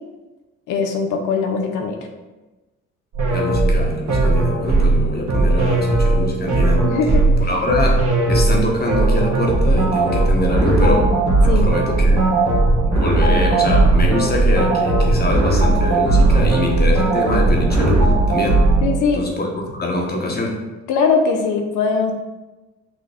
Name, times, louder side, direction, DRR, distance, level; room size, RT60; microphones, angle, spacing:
voice 1, 0.7-2.0 6.8-7.2 11.5-11.7 18.8-19.2 20.9-22.1, left 5 dB, 90° left, 4 dB, 0.7 m, -20 dB
sound 1, 3.1-19.0, right 2 dB, 75° right, 1.2 m, -17 dB
voice 2, 3.3-6.8 7.4-8.0 8.3-11.1 11.4-12.2 12.8-18.7 19.1-20.6, left 1 dB, 30° left, 0 dB, 1.1 m, -24 dB
6.3 x 2.5 x 3.4 m, 1.1 s
cardioid pair, 90°, 30 cm